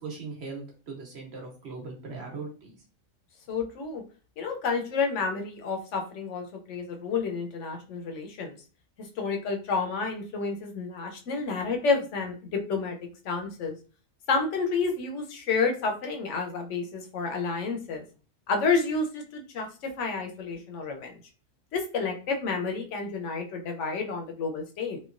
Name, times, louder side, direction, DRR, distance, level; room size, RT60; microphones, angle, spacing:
voice 1, 0.0-2.8, right 4 dB, 60° right, 0 dB, 1.1 m, -39 dB
voice 2, 3.5-4.0 4.4-8.6 9.0-13.0 13.2-13.7 14.3-18.0 18.5-21.2 21.7-25.0, left 4 dB, 75° left, 3 dB, 0.9 m, -30 dB
3.0 x 2.2 x 2.4 m, 0.36 s
omnidirectional pair, 1.3 m